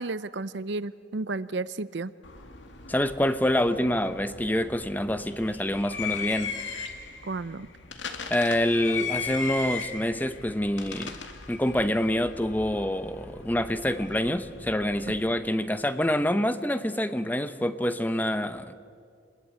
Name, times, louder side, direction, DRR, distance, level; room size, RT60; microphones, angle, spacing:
voice 1, 0.0-2.1 7.2-7.7, right 3 dB, 60° right, 17 dB, 0.6 m, -32 dB
sound 1, 2.2-15.3, left 5 dB, 65° left, 2.3 m, -38 dB
voice 2, 2.9-6.5 8.3-11.2 11.5-18.7, left 1 dB, 10° left, 11 dB, 0.8 m, -26 dB
27.0 x 21.0 x 8.7 m, 2.2 s
head